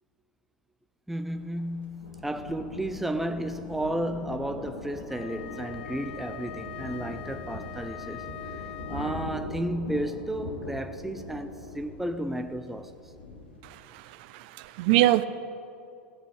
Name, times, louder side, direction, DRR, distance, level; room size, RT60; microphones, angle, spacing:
voice 1, 1.1-8.2 8.5-13.1, right 1 dB, 5° right, 0.6 m, -33 dB
Thunder, 1.3-13.6, left 1 dB, 75° left, 2.7 m, -41 dB
Wind instrument woodwind instrument, 5.0-9.7, left 11 dB, 60° left, 0.5 m, -42 dB
voice 2, 13.6-14.0 14.3-15.2, right 16 dB, 55° right, 0.6 m, -24 dB
16.0 x 7.8 x 6.5 m
figure-of-eight pair, 85°, 6 cm